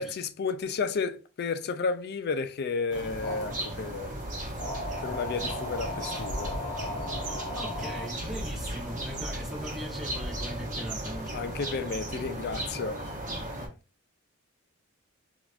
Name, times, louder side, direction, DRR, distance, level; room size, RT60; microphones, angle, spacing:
voice 1, 0.0-4.2 5.0-6.6 11.3-13.1, left 4 dB, 50° left, 0.4 m, -32 dB
sound 1, 2.9-13.7, right 1 dB, 40° right, 1.2 m, -35 dB
sound 2, 3.2-3.7 4.6-8.1, left 1 dB, 30° left, 1.1 m, -37 dB
voice 2, 7.3-11.5, equal, ahead, 1.1 m, -40 dB
3.9 x 2.9 x 2.5 m
head